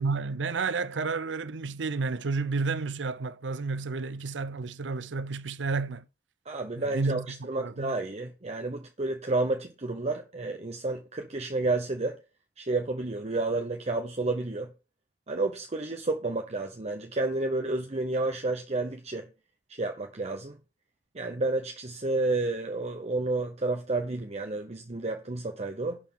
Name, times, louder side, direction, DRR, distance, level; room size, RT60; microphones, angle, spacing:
voice 1, 0.0-6.1 6.8-8.0, right 4 dB, 90° right, 0.6 m, -31 dB
voice 2, 6.5-12.2 12.6-14.7 15.3-19.3 19.7-20.6 21.1-26.0, right 2 dB, 35° right, 0.9 m, -30 dB
11.0 x 4.5 x 7.3 m
head